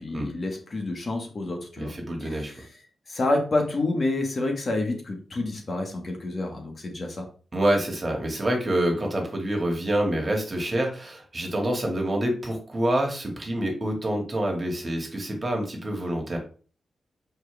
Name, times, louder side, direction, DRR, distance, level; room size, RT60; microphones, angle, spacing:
voice 1, 0.0-1.9 2.2-2.7 3.1-7.3, left 2 dB, 40° left, 2 dB, 1.7 m, -28 dB
voice 2, 1.8-2.5 7.5-16.4, right 1 dB, 30° right, 1 dB, 2.1 m, -27 dB
7.7 x 4.6 x 3.5 m, 0.40 s
wide cardioid pair, 110°, 0 cm